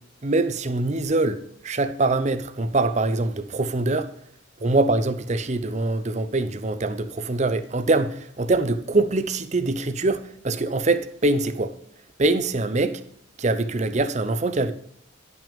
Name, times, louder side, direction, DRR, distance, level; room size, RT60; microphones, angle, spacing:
voice 1, 0.2-4.1 4.6-11.7 12.2-13.0 13.4-14.7, right 2 dB, 35° right, 0.7 m, -23 dB
11.0 x 6.0 x 5.2 m
head